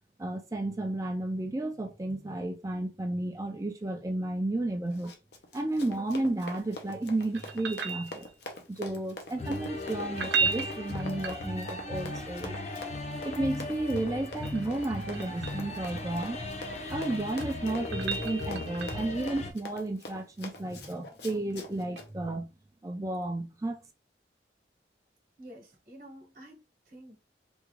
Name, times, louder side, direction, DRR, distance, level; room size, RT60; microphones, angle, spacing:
voice 1, 0.2-5.1 5.5-8.3 8.7-12.5 13.2-16.4 16.9-22.5 22.8-23.8, right 2 dB, 20° right, 0.4 m, -32 dB
Run, 4.9-22.1, left 2 dB, 75° left, 0.7 m, -45 dB
sound 1, 7.3-8.6 10.0-11.9 14.0-15.7 17.1-19.2 21.9-22.0, right 5 dB, 85° right, 0.6 m, -34 dB
sound 2, 9.4-19.5, left 2 dB, 40° left, 0.7 m, -37 dB
voice 2, 25.4-27.2, right 1 dB, 50° right, 1.0 m, -50 dB
3.5 x 2.3 x 3.1 m
head